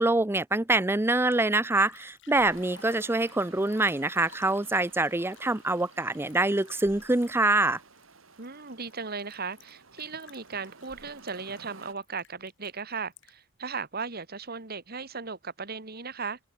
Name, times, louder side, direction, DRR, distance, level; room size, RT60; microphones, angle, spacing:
voice 1, 0.0-7.8, right 2 dB, 10° right, 0.6 m, -25 dB
Liquid, 1.6-13.5 14.0-14.1, left 6 dB, 65° left, 4.7 m, -55 dB
sound 1, 2.5-11.9, right 4 dB, 85° right, 2.9 m, -53 dB
voice 2, 8.4-16.4, right 5 dB, 50° right, 2.2 m, -37 dB
head